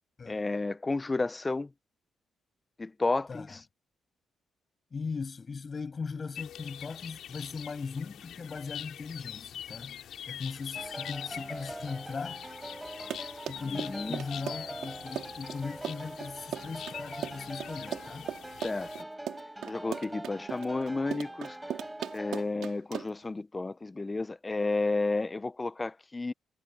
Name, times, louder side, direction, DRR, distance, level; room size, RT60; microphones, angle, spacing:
voice 1, 0.3-1.7 2.8-3.6 13.7-14.2 18.6-19.1 19.7-21.6 22.1-26.3, left 3 dB, 20° left, 0.7 m, -32 dB
voice 2, 4.9-12.4 13.5-18.3, left 5 dB, 35° left, 7.4 m, -39 dB
sound 1, 6.4-19.0, left 10 dB, 75° left, 3.0 m, -44 dB
sound 2, 10.7-22.4, right 1 dB, 10° right, 5.7 m, -43 dB
Run, 12.9-23.3, right 10 dB, 75° right, 3.5 m, -38 dB
cardioid pair, 90°, 0 cm